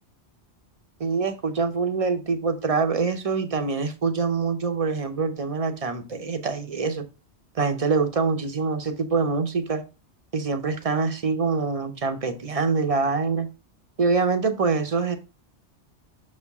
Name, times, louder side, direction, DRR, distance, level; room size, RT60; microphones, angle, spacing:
voice 1, 1.0-7.1 7.5-9.8 10.3-13.5 14.0-15.2, right 4 dB, 35° right, 0.7 m, -25 dB
6.3 x 4.3 x 3.5 m
omnidirectional pair, 1.2 m